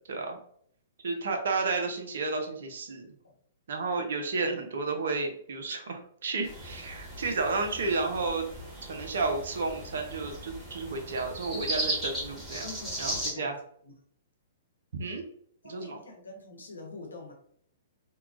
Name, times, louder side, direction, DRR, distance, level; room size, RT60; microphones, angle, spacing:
voice 1, 1.0-3.1 3.7-8.4 8.8-12.7 13.0-13.5 14.9-15.2 15.6-16.0, right 3 dB, 70° right, 3 dB, 0.6 m, -32 dB
sound 1, 6.4-13.3, right 1 dB, 10° right, 1.2 m, -37 dB
voice 2, 12.6-13.5 13.8-13.9 15.6-17.3, left 3 dB, 85° left, 1 dB, 0.8 m, -45 dB
2.9 x 2.3 x 2.4 m, 0.62 s
hypercardioid pair, 120°, 0 cm